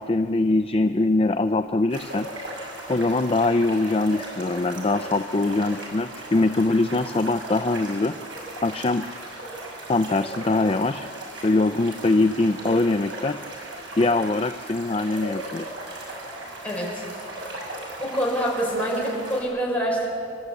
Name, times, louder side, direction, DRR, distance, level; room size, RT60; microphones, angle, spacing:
voice 1, 0.0-2.3 2.9-8.1 8.6-9.0 9.9-11.1 11.4-13.4 14.0-15.7, left 2 dB, 30° left, 9 dB, 0.5 m, -22 dB
sound 1, 1.9-19.4, right 1 dB, 70° right, 6.4 m, -37 dB
voice 2, 16.6-17.0 18.0-20.1, right 1 dB, 5° left, -4 dB, 5.6 m, -25 dB
29.0 x 13.0 x 8.4 m, 2.5 s
head